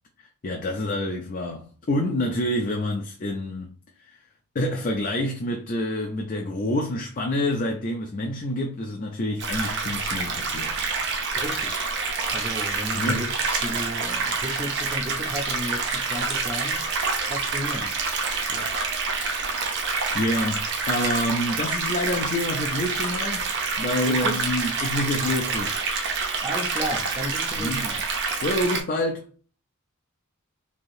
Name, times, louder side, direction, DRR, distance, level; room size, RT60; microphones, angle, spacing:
voice 1, 0.4-3.7 4.0-4.2 4.5-10.8 12.9-13.3 18.5-18.8 20.1-23.4 23.8-25.7 27.6-27.9 28.4-29.3, left 1 dB, 40° left, 0.4 m, -27 dB
sound 1, 9.4-28.8, right 4 dB, 55° right, 0.7 m, -27 dB
voice 2, 11.3-11.8 12.3-16.8 17.2-17.9 24.0-24.4 26.4-28.0, equal, 20° right, 0.5 m, -33 dB
3.3 x 2.7 x 2.6 m
head